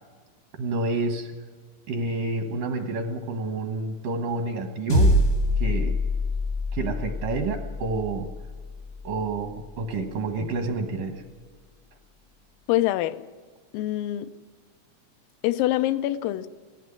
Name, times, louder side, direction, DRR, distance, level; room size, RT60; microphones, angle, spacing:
voice 1, 0.6-1.3 1.9-5.2 5.6-6.0 6.7-8.3 9.0-11.2, right 3 dB, 80° right, 7 dB, 1.9 m, -29 dB
sound 1, 4.9-9.5, left 1 dB, 65° left, 0.8 m, -25 dB
voice 2, 12.7-13.2 13.7-14.3 15.4-16.5, left 14 dB, 90° left, 11 dB, 3.4 m, -25 dB
18.0 x 15.5 x 10.0 m, 1.5 s
omnidirectional pair, 5.8 m